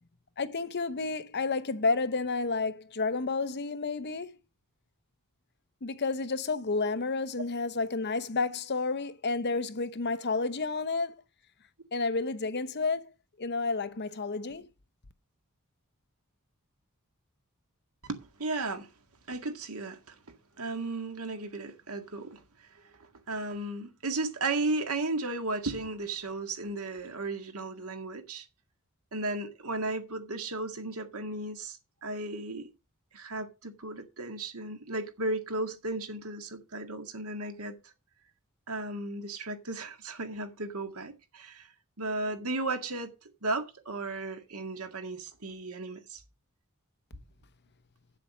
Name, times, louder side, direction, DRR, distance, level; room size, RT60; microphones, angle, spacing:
voice 1, 0.4-4.3 5.8-11.1 11.9-13.1 13.4-14.7, left 3 dB, 50° left, 0.8 m, -30 dB
voice 2, 18.1-18.9 19.3-28.5 29.1-32.7 33.1-37.8 38.7-41.7 42.0-43.1 43.4-46.2, right 2 dB, 75° right, 2.0 m, -35 dB
8.2 x 7.6 x 6.2 m
head